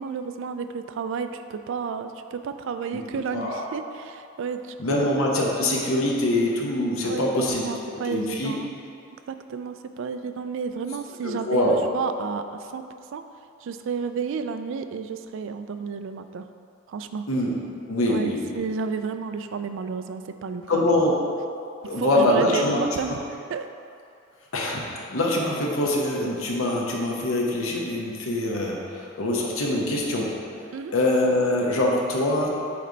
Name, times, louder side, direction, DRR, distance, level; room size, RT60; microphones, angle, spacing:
voice 1, 0.0-5.1 7.0-8.7 9.3-12.4 12.7-12.8 13.1-13.2 13.6-16.4 16.9-17.2 18.1-20.8 22.0-23.2 23.5-23.7 30.7-30.9, right 5 dB, 65° right, 9 dB, 0.3 m, -31 dB
voice 2, 3.3-3.7 4.8-8.6 11.2-11.8 17.3-17.6 17.9-18.6 20.7-21.2 21.8-23.2 24.5-30.4 30.9-32.5, left 1 dB, 75° left, -2 dB, 0.9 m, -24 dB
8.5 x 3.2 x 3.9 m, 2.5 s
head